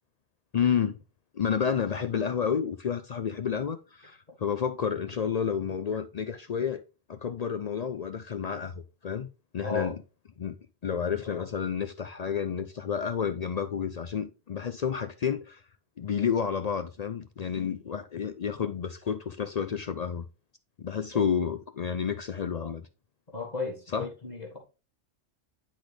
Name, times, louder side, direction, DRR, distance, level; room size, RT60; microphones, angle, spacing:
voice 1, 0.5-1.0 1.3-6.8 7.1-9.3 9.5-10.0 10.4-10.6 10.8-15.6 16.0-20.2 20.8-22.9 23.9-24.1, left 7 dB, 65° left, 0.4 m, -30 dB
voice 2, 9.6-9.9 21.1-21.3 23.3-24.6, left 4 dB, 35° left, 1.6 m, -34 dB
10.0 x 4.1 x 3.2 m
omnidirectional pair, 1.3 m